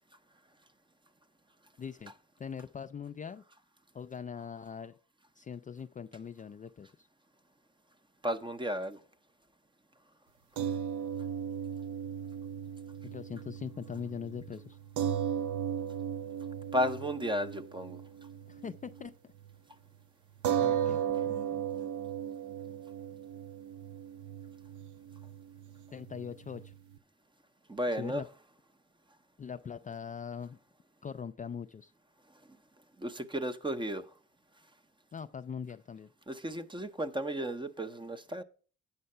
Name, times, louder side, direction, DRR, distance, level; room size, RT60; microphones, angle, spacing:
voice 1, 1.8-2.1 2.4-3.4 3.9-4.9 5.4-6.9 13.0-14.8 18.5-19.1 20.6-21.6 25.9-26.7 28.0-28.3 29.4-30.6 31.0-31.9 35.1-36.1, left 7 dB, 25° left, 0.4 m, -41 dB
voice 2, 8.2-9.0 16.7-18.0 27.7-28.2 33.0-34.0 36.3-38.4, equal, 15° right, 0.7 m, -33 dB
sound 1, 10.6-19.1 19.4-19.6 20.4-27.0, right 9 dB, 80° right, 0.6 m, -36 dB
8.7 x 5.6 x 5.4 m
cardioid pair, 90°, 30 cm